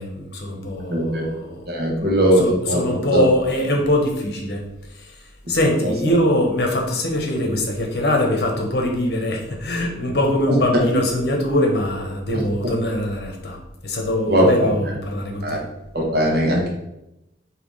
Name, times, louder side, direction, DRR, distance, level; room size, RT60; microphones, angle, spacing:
voice 1, 0.0-1.6 2.0-13.6 13.8-15.6, left 1 dB, 65° left, 2 dB, 0.9 m, -23 dB
voice 2, 0.9-1.2 1.7-2.8 3.1-3.2 10.5-10.6 12.3-12.4 14.3-14.5 15.4-15.6 15.9-16.7, equal, 60° right, -1 dB, 1.0 m, -19 dB
3.5 x 2.8 x 3.9 m, 0.87 s
head